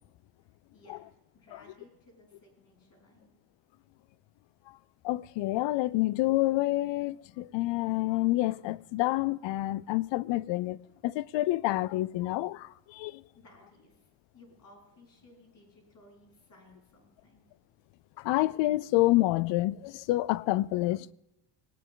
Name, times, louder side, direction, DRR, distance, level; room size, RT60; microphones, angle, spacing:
voice 1, 0.4-1.0 1.3-3.3 13.3-17.4, left 1 dB, 45° left, 5.5 m, -58 dB
voice 2, 5.0-10.8 11.0-13.2 18.2-21.1, left 18 dB, 65° left, 0.5 m, -28 dB
18.5 x 9.1 x 3.9 m
cardioid pair, 105°, 47 cm